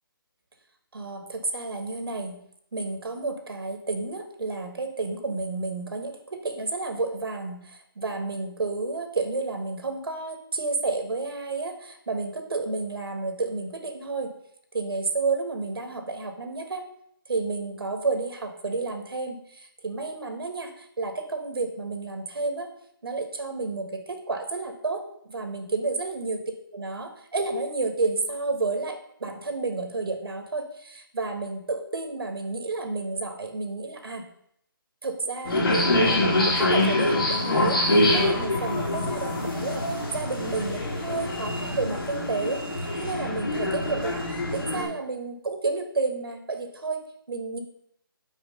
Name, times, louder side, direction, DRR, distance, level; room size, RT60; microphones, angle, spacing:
voice 1, 0.9-2.4 2.7-14.3 14.7-16.8 17.3-22.7 23.0-26.4 26.7-34.2 35.0-39.8 40.1-42.6 43.0-44.2 44.5-47.6, right 3 dB, 85° right, 5 dB, 1.5 m, -31 dB
sound 1, 35.4-44.8, left 1 dB, 75° left, 2.5 m, -25 dB
5.7 x 4.8 x 5.4 m, 0.70 s
hypercardioid pair, 180°, 12 cm